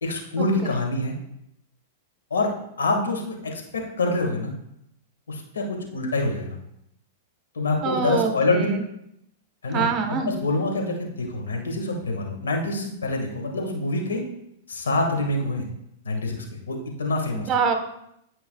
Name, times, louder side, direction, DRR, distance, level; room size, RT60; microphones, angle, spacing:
voice 1, 0.0-1.1 2.3-2.5 2.8-4.5 5.3-5.6 5.9-6.6 7.5-8.7 9.6-9.9 10.3-14.2 14.7-15.7 16.0-17.5, left 2 dB, 85° left, 2 dB, 1.8 m, -26 dB
voice 2, 7.8-8.8 9.7-10.3 17.3-17.7, right 5 dB, 35° right, 6 dB, 1.2 m, -25 dB
12.5 x 5.7 x 2.3 m, 0.78 s
hypercardioid pair, 110°, 0 cm